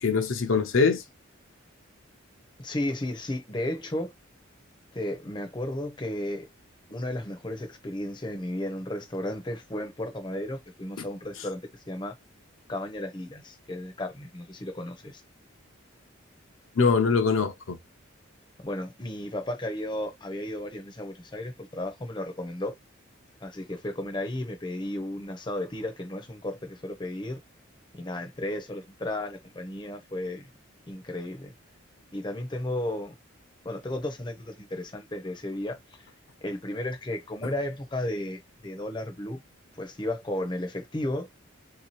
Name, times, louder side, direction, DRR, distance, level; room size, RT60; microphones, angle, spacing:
voice 1, 0.0-1.0 16.8-17.8, left 5 dB, 75° left, 0.6 m, -23 dB
voice 2, 2.6-4.1 4.9-6.5 6.9-11.6 11.9-12.1 12.7-15.2 18.6-22.7 23.4-27.4 27.9-30.5 30.9-31.5 32.1-33.1 33.6-35.8 36.4-39.4 39.8-41.3, left 1 dB, 20° left, 0.6 m, -34 dB
3.2 x 2.8 x 3.0 m
head